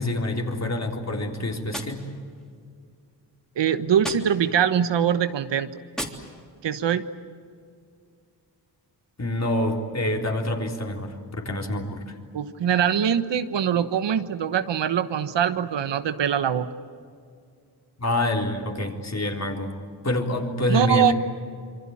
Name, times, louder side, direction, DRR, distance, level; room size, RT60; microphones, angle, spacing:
voice 1, 0.0-2.0 9.2-12.1 18.0-19.8 20.0-21.1, left 1 dB, 40° left, 2 dB, 3.8 m, -26 dB
Gunshot gunfire, 1.7-2.8 4.0-4.8 5.9-6.8, equal, ahead, 3.4 m, -38 dB
voice 2, 3.6-5.7 6.6-7.0 12.3-16.7 20.7-21.1, right 9 dB, 80° right, 11 dB, 1.3 m, -23 dB
26.5 x 24.0 x 8.7 m, 2.3 s
cardioid pair, 80°, 42 cm